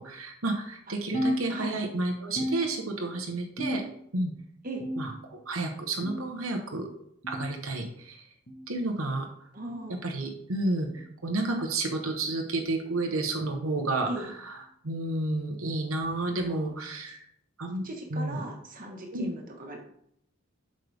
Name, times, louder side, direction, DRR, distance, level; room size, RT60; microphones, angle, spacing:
voice 1, 0.0-3.8 4.1-4.3 5.0-6.9 7.3-8.2 8.7-9.3 10.0-14.5 14.8-17.2 17.6-17.8 18.1-18.4 19.1-19.3, right 2 dB, 80° right, 2 dB, 1.1 m, -31 dB
sound 1, 1.1-2.0 2.4-3.2 3.6-4.2 4.8-5.4 6.0-6.4 7.2-7.5 8.5-8.7 9.7-9.9 10.9-11.1 12.1-12.3 13.3-13.5 14.6-14.7 15.8-15.9, equal, 40° left, 1.3 m, -34 dB
voice 2, 1.5-1.8 4.6-4.9 9.5-10.0 14.1-14.3 16.4-16.8 17.8-19.8, right 1 dB, 40° right, 1 dB, 1.5 m, -38 dB
7.8 x 6.5 x 3.5 m, 0.70 s
head